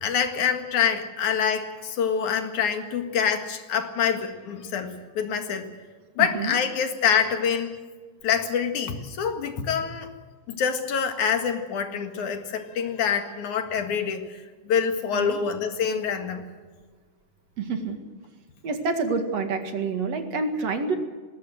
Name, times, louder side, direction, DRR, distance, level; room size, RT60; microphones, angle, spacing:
voice 1, 0.0-5.7 6.2-7.7 8.2-10.1 10.5-16.4, left 7 dB, 80° left, 7 dB, 3.3 m, -26 dB
voice 2, 6.2-6.6 15.1-15.4 17.6-18.0 18.6-21.0, right 4 dB, 60° right, 6 dB, 3.0 m, -28 dB
20.0 x 18.0 x 7.8 m, 1.4 s
omnidirectional pair, 3.4 m